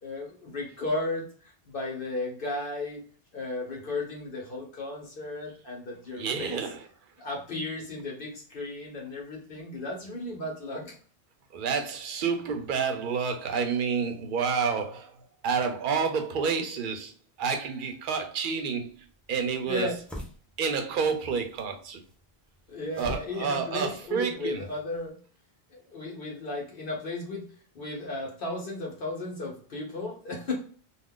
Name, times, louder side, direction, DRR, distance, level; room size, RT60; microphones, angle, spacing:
voice 1, 0.0-3.0 3.3-6.6 7.2-10.9 19.7-20.0 22.7-25.2 25.7-30.5, left 2 dB, 60° left, 0.9 m, -35 dB
voice 2, 6.2-6.8 11.5-15.2 15.4-17.1 17.4-18.9 19.3-19.9 20.6-22.0 23.0-24.7, right 5 dB, 60° right, 0.7 m, -29 dB
sound 1, 18.9-25.1, equal, ahead, 0.4 m, -46 dB
2.4 x 2.2 x 3.5 m
omnidirectional pair, 1.0 m